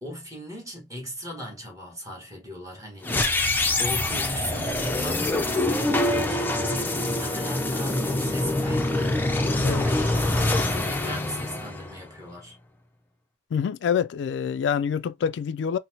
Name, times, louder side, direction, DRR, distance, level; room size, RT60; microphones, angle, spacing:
voice 1, 0.0-3.5 3.8-12.5, equal, 20° right, 1.4 m, -38 dB
sound 1, 3.0-12.3, left 2 dB, 10° left, 0.5 m, -25 dB
voice 2, 13.5-15.8, left 7 dB, 80° left, 0.3 m, -26 dB
4.2 x 2.1 x 2.8 m
head